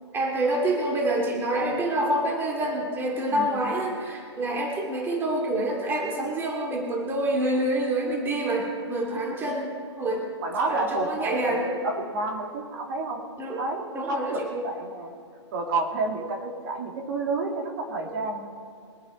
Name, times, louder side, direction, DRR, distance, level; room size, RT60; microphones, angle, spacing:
voice 1, 0.1-10.3 10.6-11.7 13.4-13.6 13.9-14.5, right 1 dB, 15° right, 0 dB, 2.4 m, -27 dB
voice 2, 10.4-13.2 13.6-15.1 15.5-18.5, right 2 dB, 45° right, 1 dB, 2.6 m, -30 dB
23.5 x 8.6 x 4.2 m, 2.4 s
hypercardioid pair, 130°, 15 cm